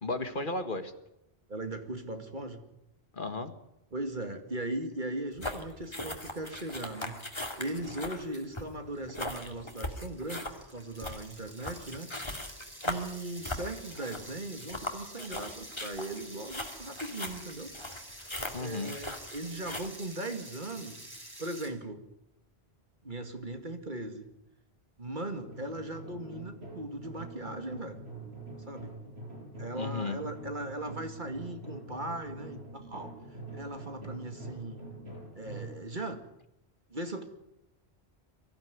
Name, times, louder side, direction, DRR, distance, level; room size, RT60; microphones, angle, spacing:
voice 1, 0.0-0.9 3.1-3.5 18.5-18.9 29.8-30.2, left 3 dB, 55° left, 9 dB, 1.7 m, -34 dB
voice 2, 1.5-2.6 3.9-7.2 7.6-12.1 12.9-17.7 18.6-21.0 21.4-22.0 23.0-24.3 25.0-28.0 28.7-28.9 29.6-33.1 33.5-34.8 35.3-36.2 36.9-37.2, right 2 dB, 50° right, 6 dB, 2.4 m, -38 dB
sound 1, 5.3-19.9, left 1 dB, 25° left, 2.5 m, -39 dB
sound 2, 8.5-8.6 8.9-21.7, right 1 dB, 20° right, 3.8 m, -49 dB
sound 3, 25.3-35.7, right 2 dB, 85° right, 6.3 m, -45 dB
23.5 x 15.0 x 9.6 m, 0.85 s
omnidirectional pair, 1.1 m